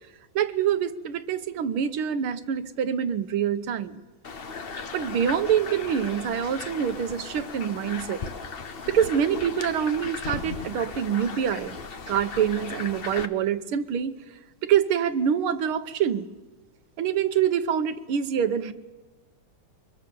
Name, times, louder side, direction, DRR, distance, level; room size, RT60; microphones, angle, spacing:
voice 1, 0.4-4.0 4.9-8.2 8.9-11.8 12.1-14.1 14.6-16.3 17.0-18.7, right 8 dB, 80° right, 11 dB, 1.8 m, -25 dB
sound 1, 4.2-13.3, left 4 dB, 50° left, 0.7 m, -36 dB
23.5 x 22.0 x 7.0 m, 1.3 s
omnidirectional pair, 2.4 m